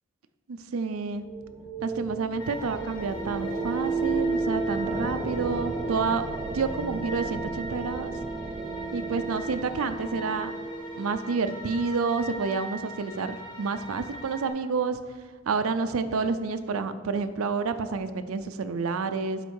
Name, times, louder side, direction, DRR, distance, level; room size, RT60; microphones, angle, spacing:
voice 1, 0.5-1.3 1.8-6.2 6.5-8.1 8.9-10.5 11.0-15.0 15.5-19.4, right 4 dB, 90° right, 10 dB, 0.5 m, -29 dB
sound 1, 0.8-11.4, right 3 dB, 25° right, 0.5 m, -33 dB
sound 2, 2.4-14.5, right 1 dB, 20° left, 1.1 m, -41 dB
7.9 x 5.2 x 4.7 m, 1.5 s
head